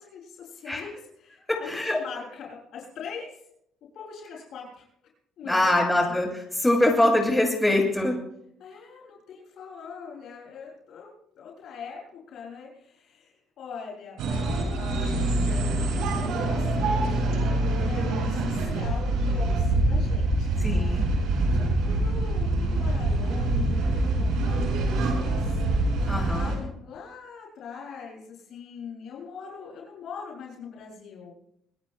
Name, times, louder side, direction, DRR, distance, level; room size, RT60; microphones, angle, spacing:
voice 1, 0.0-3.4 3.9-4.8 5.4-6.2 8.6-14.2 14.5-15.5 15.8-21.0 21.3-24.5 24.9-25.4 26.1-31.3, left 6 dB, 65° left, -2 dB, 7.2 m, -42 dB
voice 2, 1.5-2.0 5.4-8.2 20.6-21.1 26.1-26.6, left 1 dB, 10° left, 0 dB, 6.8 m, -23 dB
sound 1, 14.2-26.6, right 2 dB, 75° right, 5.3 m, -25 dB
27.0 x 20.0 x 2.2 m, 0.73 s
hypercardioid pair, 60°, 0 cm